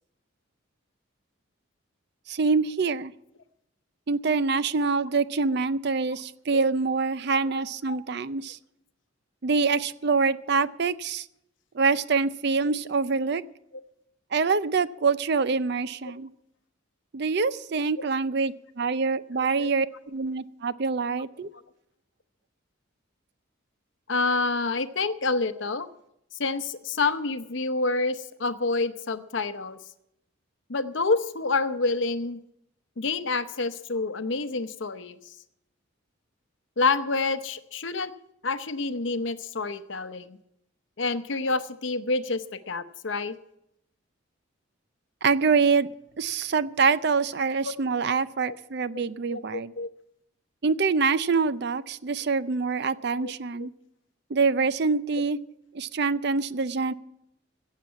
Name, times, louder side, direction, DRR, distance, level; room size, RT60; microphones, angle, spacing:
voice 1, 2.3-3.1 4.1-8.6 9.4-11.3 11.7-13.4 14.3-16.3 17.1-21.5 45.2-45.9 46.2-49.7 50.6-53.7 54.3-55.4 55.7-56.9, right 4 dB, 55° right, 15 dB, 0.5 m, -25 dB
voice 2, 7.4-8.0 19.3-19.7 24.1-25.9 26.4-29.8 30.7-32.4 33.0-35.2 36.8-38.1 38.4-40.4 41.0-43.4 47.6-47.7 48.4-48.6 48.9-49.0 49.3-49.9 53.1-53.3 53.6-53.7, left 3 dB, 65° left, 11 dB, 0.8 m, -28 dB
15.5 x 7.5 x 8.4 m, 0.79 s
head